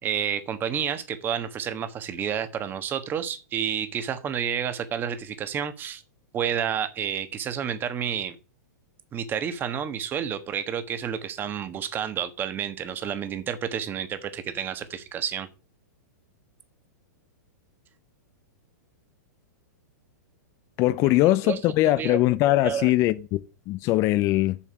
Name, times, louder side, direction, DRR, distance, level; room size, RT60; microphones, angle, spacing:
voice 1, 0.0-6.0 6.3-8.3 9.1-15.5 21.0-21.1 21.4-22.2 22.6-22.9, right 8 dB, 20° right, 1.3 m, -30 dB
voice 2, 20.8-24.6, left 16 dB, 30° left, 0.5 m, -22 dB
7.2 x 6.7 x 6.2 m
hypercardioid pair, 150°, 10 cm